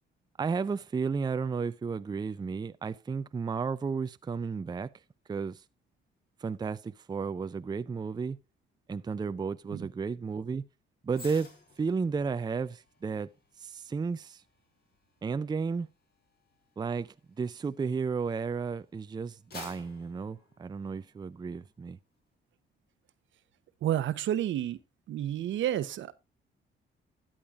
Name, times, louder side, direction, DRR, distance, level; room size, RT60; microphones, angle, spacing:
voice 1, 0.4-4.9 5.3-5.6 6.4-8.4 8.9-10.6 11.0-11.5 11.8-13.3 13.6-14.4 15.2-15.9 16.8-22.0, right 5 dB, 20° right, 0.4 m, -33 dB
sound 1, 11.1-18.5 19.0-21.3 21.7-21.9, left 3 dB, 55° left, 4.5 m, -53 dB
voice 2, 23.8-24.8 25.1-26.2, right 11 dB, 70° right, 0.9 m, -30 dB
13.0 x 8.8 x 2.5 m
cardioid pair, 90°, 20 cm